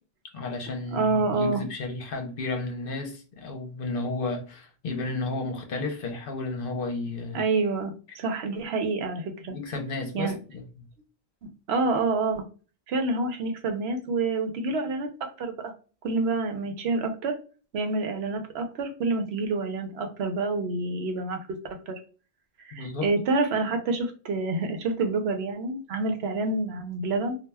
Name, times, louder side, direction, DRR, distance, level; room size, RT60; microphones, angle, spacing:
voice 1, 0.3-7.4 9.5-10.9 22.7-23.1, left 3 dB, 65° left, 0.8 m, -32 dB
voice 2, 0.9-1.6 7.3-9.6 10.1-10.4 11.7-12.4 12.9-15.1 15.4-15.7 16.0-17.4 17.7-21.4 21.9-22.0 22.7-27.4, right 3 dB, 85° right, 0.9 m, -27 dB
2.3 x 2.2 x 3.2 m
omnidirectional pair, 1.0 m